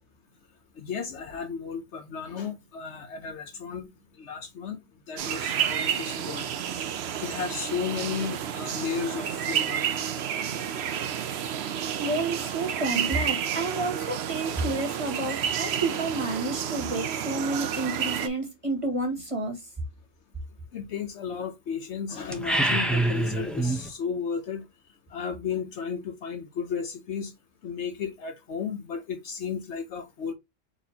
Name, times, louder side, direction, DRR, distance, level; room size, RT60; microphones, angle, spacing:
voice 1, 0.8-3.9 4.2-4.8 5.1-9.8 10.6-10.7 20.7-24.7 25.1-27.3 27.6-30.3, left 6 dB, 65° left, 1.0 m, -34 dB
sound 1, 5.2-18.3, right 9 dB, 65° right, 0.8 m, -30 dB
voice 2, 11.4-19.7, right 2 dB, 25° right, 1.7 m, -30 dB
sound 2, 22.3-23.9, right 2 dB, ahead, 0.6 m, -25 dB
4.5 x 4.1 x 2.7 m
omnidirectional pair, 1.3 m